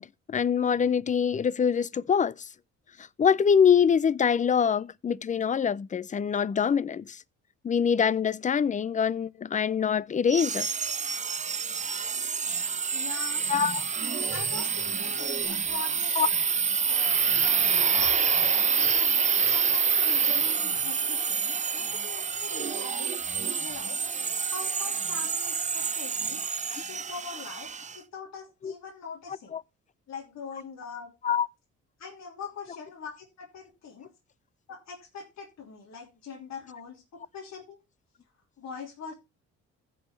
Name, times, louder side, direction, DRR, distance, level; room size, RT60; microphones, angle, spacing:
voice 1, 0.0-2.5 3.0-7.2 7.6-10.7 13.5-13.8 16.2-16.3 17.4-17.5 26.7-26.8 28.6-28.7 29.5-29.6 31.2-31.5, left 7 dB, 25° left, 0.4 m, -24 dB
sound 1, 10.3-28.0, right 6 dB, 25° right, 0.5 m, -27 dB
voice 2, 12.9-13.5 14.3-17.2 18.7-23.1 23.6-24.0 24.5-26.4 26.8-29.6 30.1-31.1 32.0-34.1 34.7-37.8 38.6-39.1, left 5 dB, 65° left, 3.0 m, -42 dB
15.5 x 5.5 x 3.2 m
cardioid pair, 90°, 30 cm